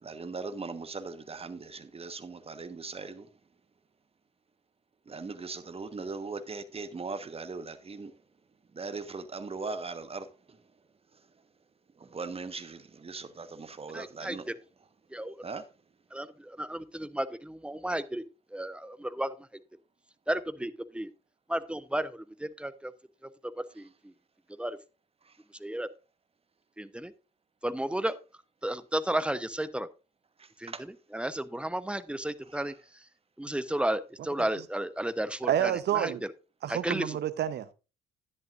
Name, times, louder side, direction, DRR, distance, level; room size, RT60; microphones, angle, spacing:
voice 1, 0.0-3.3 5.1-8.1 8.7-10.6 12.0-14.5 15.4-15.6 25.2-25.3 30.4-30.8, right 4 dB, 30° right, 1.3 m, -39 dB
voice 2, 13.9-14.6 15.1-15.3 16.1-18.3 18.5-19.4 20.3-21.1 21.5-22.9 23.2-23.3 23.6-24.1 24.6-24.8 25.6-25.9 26.8-27.1 27.6-28.2 28.6-29.9 30.6-32.7 33.4-36.1 36.7-37.2, right 1 dB, 5° right, 0.9 m, -33 dB
voice 3, 35.5-36.2 36.6-37.7, right 10 dB, 55° right, 0.9 m, -29 dB
11.0 x 10.5 x 2.5 m
hypercardioid pair, 55°, 20 cm